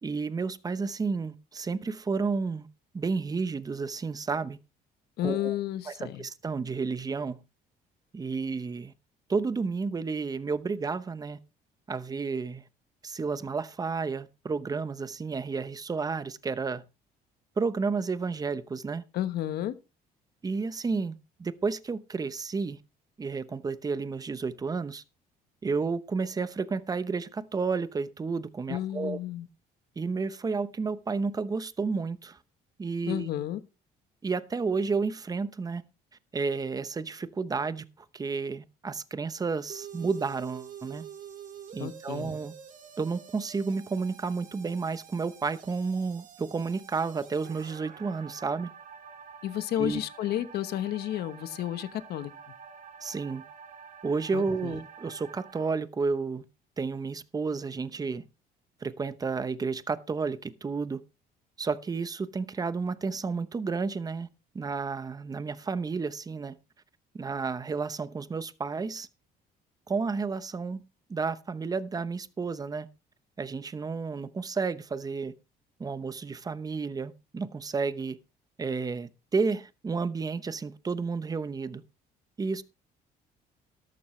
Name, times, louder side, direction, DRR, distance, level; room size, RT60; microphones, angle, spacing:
voice 1, 0.0-2.7 2.9-4.6 5.2-5.5 5.9-7.4 8.1-8.9 9.3-11.4 11.9-12.6 13.0-16.8 17.6-19.0 20.4-22.8 23.2-25.0 25.6-29.2 30.0-32.4 32.8-33.3 34.2-35.8 36.3-37.8 38.1-41.0 41.7-42.5 43.0-48.7 49.8-50.0 53.0-53.4 54.0-56.4 56.8-58.3 58.8-61.0 61.6-64.3 64.5-66.6 67.1-69.1 69.9-70.8 71.1-72.9 73.4-75.3 75.8-78.2 78.6-81.8 82.4-82.6, right 4 dB, 20° right, 0.9 m, -31 dB
voice 2, 5.2-6.2 19.1-19.7 28.7-29.5 33.1-33.6 41.8-42.3 49.4-52.3 54.3-54.8, left 12 dB, 70° left, 1.1 m, -32 dB
sound 1, 39.7-55.7, right 7 dB, 50° right, 2.1 m, -48 dB
13.0 x 12.0 x 3.2 m
cardioid pair, 110°, 17 cm